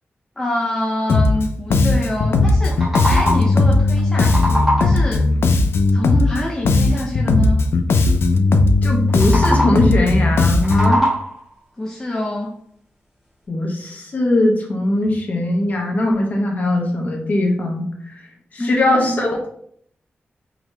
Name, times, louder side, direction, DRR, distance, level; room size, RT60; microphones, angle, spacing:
voice 1, 0.4-5.2 5.9-7.6 11.8-12.5 18.6-19.2, left 1 dB, 15° left, -1 dB, 0.5 m, -25 dB
Bass guitar, 1.1-1.5 1.7-6.4 6.7-11.0, left 3 dB, 85° left, 0.4 m, -16 dB
sound 1, 2.5-3.6 4.0-5.1 9.1-10.0 10.4-11.5, equal, 5° right, 1.5 m, -22 dB
voice 2, 8.8-11.0 13.5-18.2 18.5-19.5, left 1 dB, 45° left, 0 dB, 0.9 m, -20 dB
3.8 x 2.9 x 3.1 m, 0.65 s
wide cardioid pair, 160°, 4 cm